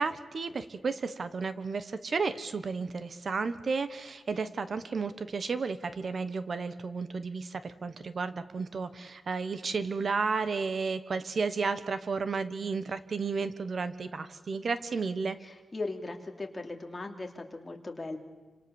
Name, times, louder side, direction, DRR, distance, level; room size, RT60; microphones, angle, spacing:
voice 1, 0.0-15.4, right 4 dB, 55° right, 12 dB, 1.3 m, -32 dB
voice 2, 15.4-18.2, left 2 dB, 25° left, 3 dB, 3.0 m, -38 dB
29.0 x 26.0 x 7.2 m, 1.3 s
wide cardioid pair, 145°, 0 cm